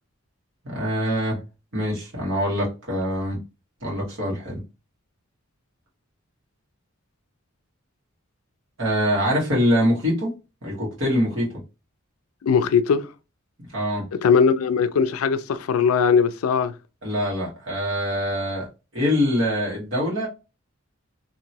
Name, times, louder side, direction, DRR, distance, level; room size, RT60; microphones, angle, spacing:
voice 1, 0.6-1.4 1.7-3.4 3.8-4.6 8.8-10.3 10.6-11.5 13.7-14.0 17.0-18.7 18.9-20.3, equal, 65° right, 1.7 m, -24 dB
voice 2, 12.4-13.1 14.2-16.7, left 6 dB, 90° left, 0.4 m, -20 dB
2.9 x 2.9 x 2.7 m
head